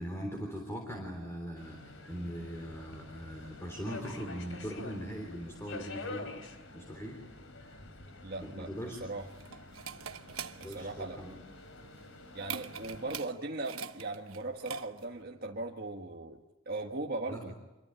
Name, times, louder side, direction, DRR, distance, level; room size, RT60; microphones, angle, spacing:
voice 1, 0.0-6.3 6.7-7.2 8.4-9.0 10.6-11.3 17.3-17.5, equal, 15° left, 2 dB, 3.7 m, -40 dB
Subway metro underground, 1.6-13.2, left 2 dB, 70° left, 3.6 m, -48 dB
voice 2, 8.2-9.3 10.6-11.2 12.3-17.6, right 2 dB, 45° right, 0 dB, 1.7 m, -39 dB
sound 1, 8.8-15.2, right 6 dB, 90° right, 1.1 m, -44 dB
26.5 x 23.5 x 9.0 m, 1.0 s
head